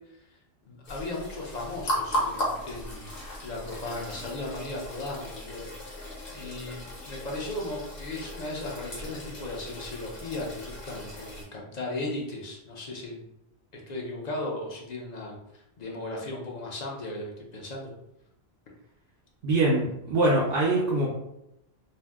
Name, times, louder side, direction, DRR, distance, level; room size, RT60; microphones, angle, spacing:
voice 1, 0.7-3.1 3.4-13.2 13.7-17.9, left 2 dB, 50° left, -1 dB, 0.6 m, -36 dB
sound 1, 0.8-11.4, equal, 65° left, 1.1 m, -36 dB
voice 2, 19.4-21.1, right 2 dB, 70° right, -3 dB, 0.8 m, -23 dB
2.6 x 2.1 x 3.4 m, 0.85 s
omnidirectional pair, 1.0 m